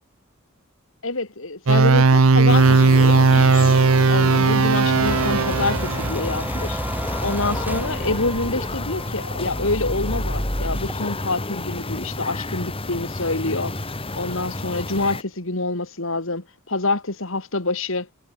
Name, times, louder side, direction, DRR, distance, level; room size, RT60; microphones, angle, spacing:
voice 1, 1.0-3.7 4.1-6.8 7.2-13.7 14.1-18.1, left 2 dB, 65° left, 2.7 m, -26 dB
sound 1, 1.7-6.1, right 4 dB, 75° right, 0.8 m, -16 dB
sound 2, 2.5-15.2, left 2 dB, 25° left, 3.0 m, -31 dB
sound 3, 5.0-10.9, right 1 dB, 10° right, 1.4 m, -30 dB
head